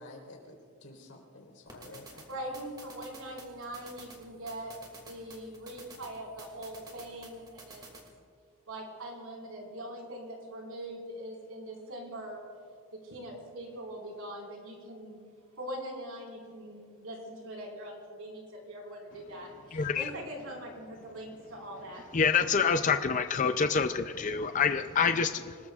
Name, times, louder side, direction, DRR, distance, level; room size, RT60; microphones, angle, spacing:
voice 1, 0.0-2.3, left 2 dB, 80° left, 0 dB, 4.0 m, -50 dB
sound 1, 1.7-8.1, right 2 dB, 20° right, 2.3 m, -52 dB
voice 2, 2.3-7.8 8.7-12.4 13.0-15.2 15.6-22.2, right 1 dB, 80° right, -1 dB, 4.7 m, -42 dB
voice 3, 19.7-20.1 22.1-25.6, left 6 dB, 35° left, 8 dB, 0.4 m, -27 dB
26.5 x 19.5 x 2.4 m, 2.1 s
head